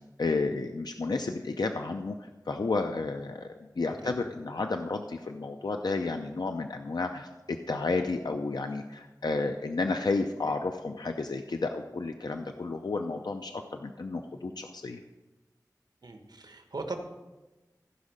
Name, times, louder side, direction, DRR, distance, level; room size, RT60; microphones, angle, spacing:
voice 1, 0.0-15.0, left 3 dB, 85° left, 5 dB, 0.5 m, -32 dB
voice 2, 16.0-17.0, right 3 dB, 80° right, 5 dB, 1.2 m, -38 dB
15.5 x 5.3 x 5.0 m, 1.1 s
wide cardioid pair, 60°, 7 cm